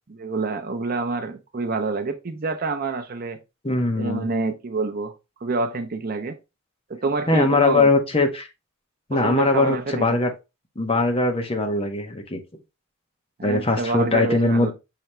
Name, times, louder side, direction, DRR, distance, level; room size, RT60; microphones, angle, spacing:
voice 1, 0.1-3.4 4.0-5.1 5.4-6.4 6.9-7.9 9.1-10.2 13.4-14.7, right 3 dB, 45° right, 0.6 m, -27 dB
voice 2, 3.6-4.3 7.3-8.5 9.1-10.3 10.8-12.4 13.4-14.7, left 2 dB, 30° left, 0.8 m, -21 dB
5.8 x 2.8 x 3.2 m
head